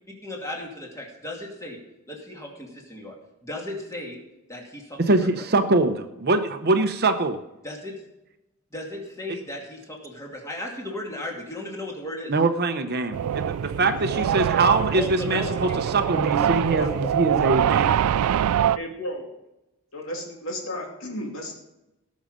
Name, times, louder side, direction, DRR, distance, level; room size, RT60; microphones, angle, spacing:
voice 1, 0.2-1.8 2.1-3.1 3.4-4.2 4.5-5.5 7.6-8.0 8.7-12.3 14.9-15.8 16.4-16.5, left 1 dB, 15° left, -1 dB, 2.5 m, -36 dB
voice 2, 5.1-7.4 12.3-18.1, right 3 dB, 45° right, 8 dB, 0.8 m, -23 dB
sound 1, 13.1-18.8, right 9 dB, 75° right, 0.3 m, -24 dB
voice 3, 14.6-15.4 16.0-16.1 16.7-17.1 18.7-19.3 19.9-21.6, equal, 60° left, 0 dB, 2.8 m, -34 dB
18.0 x 6.4 x 5.1 m, 0.93 s
head